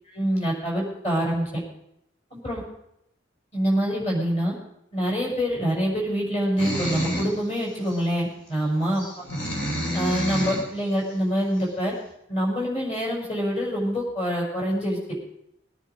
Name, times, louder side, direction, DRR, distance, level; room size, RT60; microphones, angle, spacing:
voice 1, 0.1-1.5 2.3-2.6 3.5-4.5 4.9-9.0 9.9-11.9 12.3-15.2, equal, 35° left, -3 dB, 6.4 m, -25 dB
sound 1, 6.6-7.4 7.9-8.0 9.0-10.7, equal, 75° left, 3.7 m, -28 dB
21.5 x 10.0 x 5.2 m, 0.79 s
head